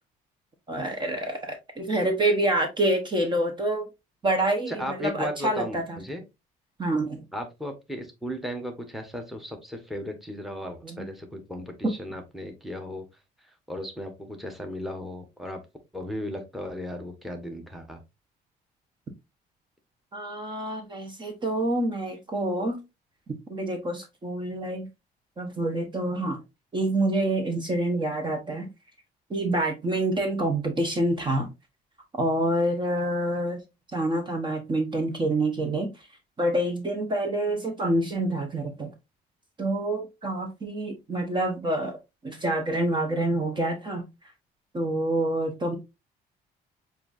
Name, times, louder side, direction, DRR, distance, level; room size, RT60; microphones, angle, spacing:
voice 1, 0.7-3.9 4.2-6.0 6.8-7.3 10.8-11.1 11.8-11.9 20.1-22.8 23.3-24.9 25.4-26.4 26.7-28.7 29.3-31.5 32.2-33.6 33.9-36.1 36.4-38.9 39.6-42.0 42.2-44.0 44.7-45.8, right 1 dB, 30° right, 4 dB, 1.0 m, -27 dB
voice 2, 4.7-6.2 7.3-13.1 13.7-15.6 15.9-18.0, left 1 dB, ahead, 5 dB, 1.1 m, -36 dB
6.8 x 2.7 x 2.5 m, 0.23 s
cardioid pair, 110°, 17 cm